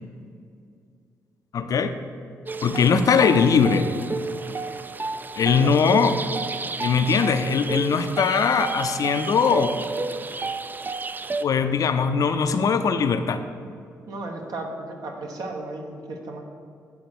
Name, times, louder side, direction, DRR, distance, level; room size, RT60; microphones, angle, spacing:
voice 1, 1.5-2.0 2.6-3.9 5.4-6.1 6.8-9.8 11.4-13.4, left 6 dB, 60° left, 9 dB, 0.5 m, -20 dB
sound 1, 2.5-11.4, right 3 dB, 25° right, 0.3 m, -31 dB
voice 2, 14.1-16.4, right 2 dB, 65° right, 2 dB, 1.1 m, -34 dB
8.4 x 3.9 x 6.0 m, 2.4 s
supercardioid pair, 50°, 7 cm